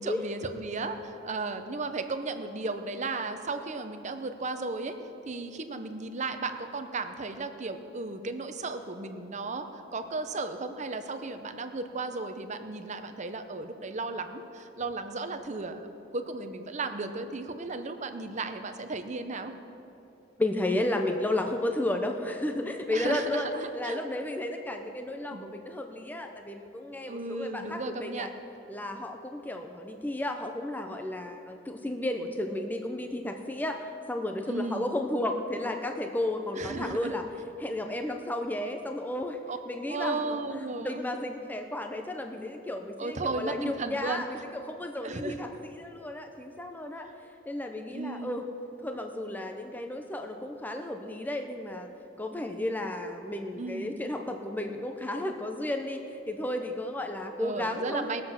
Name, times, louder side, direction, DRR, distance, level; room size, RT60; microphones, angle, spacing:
voice 1, 0.0-5.0 5.3-19.5 22.9-24.0 25.3-25.5 27.1-28.3 34.5-34.9 36.6-37.1 39.5-39.6 39.9-41.0 43.0-44.2 45.0-45.4 47.9-48.3 53.5-54.0 57.4-58.2, right 3 dB, 40° right, 8 dB, 0.8 m, -35 dB
voice 2, 20.4-28.3 28.7-37.3 37.6-47.1 47.5-48.5 48.8-51.9 52.2-58.1, left 1 dB, 10° left, 4 dB, 0.6 m, -33 dB
20.0 x 7.7 x 5.8 m, 2.9 s
head